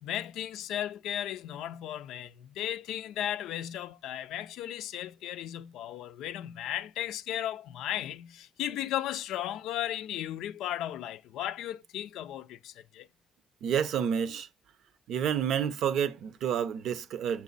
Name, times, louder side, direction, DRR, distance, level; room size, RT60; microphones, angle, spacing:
voice 1, 0.0-13.1, left 11 dB, 90° left, 0.4 m, -35 dB
voice 2, 13.6-14.5 15.1-17.4, right 8 dB, 80° right, 0.6 m, -29 dB
6.0 x 5.1 x 3.9 m
cardioid pair, 90°, 0 cm